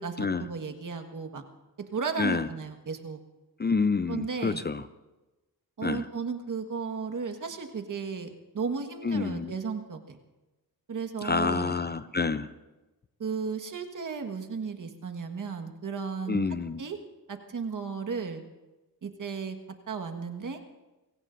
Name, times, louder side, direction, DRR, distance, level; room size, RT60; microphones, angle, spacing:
voice 1, 0.0-1.4 1.9-3.2 4.1-4.6 5.8-10.2 10.9-11.7 13.2-16.4 16.8-17.0 17.3-18.4 19.0-19.6 19.9-20.6, right 5 dB, 55° right, 5 dB, 1.7 m, -34 dB
voice 2, 2.2-2.5 3.6-4.8 5.8-6.0 9.0-9.5 11.2-12.5 16.3-16.8, left 4 dB, 25° left, 12 dB, 0.6 m, -28 dB
29.5 x 17.0 x 2.7 m, 1.1 s
cardioid pair, 80°, 38 cm